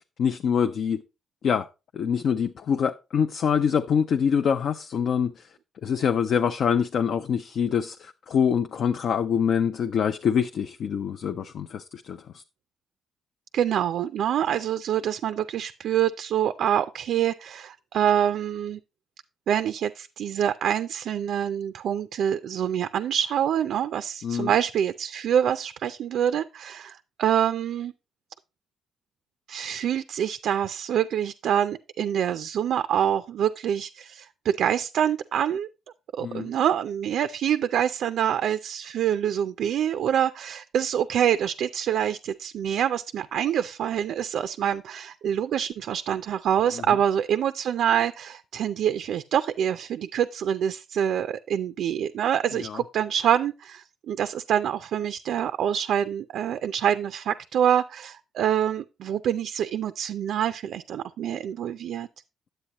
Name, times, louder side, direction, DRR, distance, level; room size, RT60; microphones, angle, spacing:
voice 1, 0.2-1.0 1.4-1.7 1.9-5.5 5.8-12.4 24.2-24.5 36.2-36.5 46.7-46.8 52.5-52.8, left 7 dB, 60° left, 0.4 m, -25 dB
voice 2, 13.5-18.8 19.5-27.9 29.5-35.7 36.1-62.1, right 9 dB, 70° right, 0.3 m, -26 dB
9.8 x 7.8 x 2.9 m
cardioid pair, 90°, 0 cm